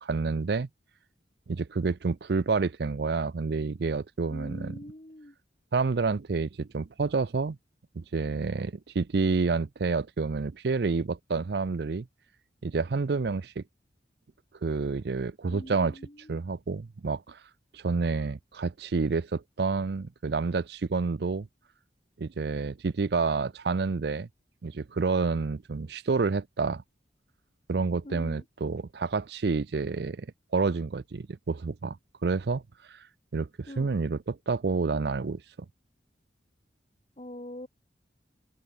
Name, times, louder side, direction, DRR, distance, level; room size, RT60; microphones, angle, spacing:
voice 1, 0.0-0.7 1.5-4.7 5.7-7.6 8.0-12.1 12.6-13.6 14.6-15.9 16.3-17.4 17.7-21.5 22.2-24.3 24.6-26.8 27.7-30.3 30.5-32.0 32.2-32.6 32.9-33.1 33.3-35.4, right 4 dB, 60° right, 0.5 m, -29 dB
voice 2, 4.3-5.4 15.5-16.4 28.0-28.5 33.7-33.9 37.2-37.7, left 1 dB, 35° left, 1.8 m, -43 dB
head